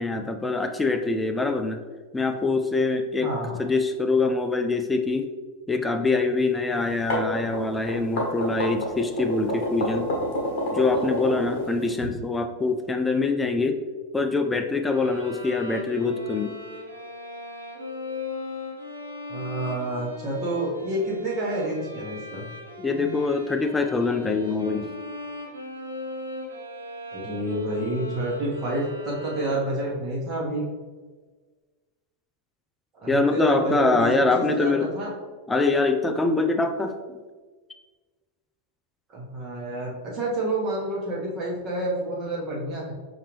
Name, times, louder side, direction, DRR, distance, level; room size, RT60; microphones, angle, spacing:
voice 1, 0.0-1.8 2.1-3.3 3.6-5.3 5.7-10.1 10.7-13.8 14.1-16.5 22.8-24.9 33.1-34.9 35.5-36.9, left 3 dB, 10° left, 6 dB, 0.3 m, -24 dB
voice 2, 3.2-3.6 19.3-22.4 27.1-30.7 32.9-35.1 39.1-42.9, right 1 dB, 30° right, -4 dB, 1.2 m, -29 dB
sound 1, 6.8-12.1, equal, 50° left, 1.2 m, -28 dB
sound 2, 14.9-30.0, left 1 dB, 85° right, 0.7 m, -38 dB
5.7 x 2.7 x 3.1 m, 1.4 s
figure-of-eight pair, 90°, 0 cm